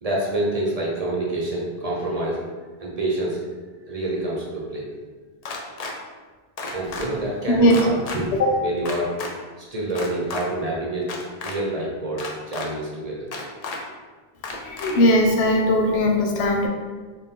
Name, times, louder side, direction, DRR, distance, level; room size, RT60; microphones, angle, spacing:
voice 1, 0.0-2.5 2.8-3.4 3.9-4.9 6.6-8.3 8.6-9.1 9.6-11.1 11.4-13.5, right 1 dB, 40° right, -4 dB, 0.9 m, -27 dB
sound 1, 5.4-5.9 6.6-7.1 7.7-8.2 8.9-9.3 9.9-10.4 11.0-11.6 12.2-12.7 13.3-13.8 14.4-14.9, left 4 dB, 50° left, 0.5 m, -32 dB
voice 2, 7.5-7.8 8.3-8.5 14.6-16.7, left 1 dB, 90° left, 1 dB, 0.9 m, -19 dB
4.2 x 2.5 x 3.6 m, 1.4 s
omnidirectional pair, 1.1 m